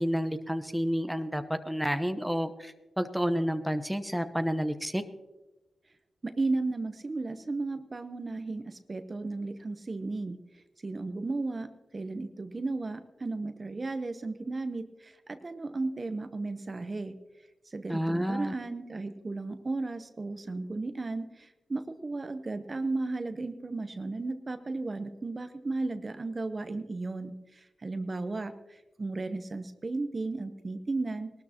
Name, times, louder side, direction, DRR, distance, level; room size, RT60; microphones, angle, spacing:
voice 1, 0.0-5.0 17.9-18.5, equal, 5° right, 9 dB, 1.0 m, -30 dB
voice 2, 6.2-10.4 10.8-17.1 17.7-31.3, right 3 dB, 40° right, 9 dB, 0.9 m, -34 dB
18.5 x 13.0 x 3.0 m, 1.1 s
cardioid pair, 50°, 0 cm